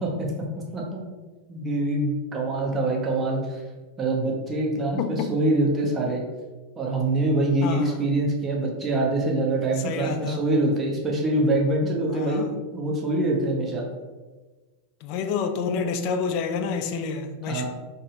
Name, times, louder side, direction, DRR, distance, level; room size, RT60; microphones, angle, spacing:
voice 1, 1.5-3.6 4.0-6.2 6.8-12.4 12.7-13.8 17.5-17.7, right 2 dB, 20° right, -2 dB, 0.8 m, -24 dB
voice 2, 5.0-5.3 7.6-8.0 9.8-10.5 12.1-12.5 15.0-17.7, left 5 dB, 45° left, 7 dB, 0.3 m, -29 dB
3.9 x 2.0 x 3.7 m, 1.3 s
figure-of-eight pair, 90°, 0 cm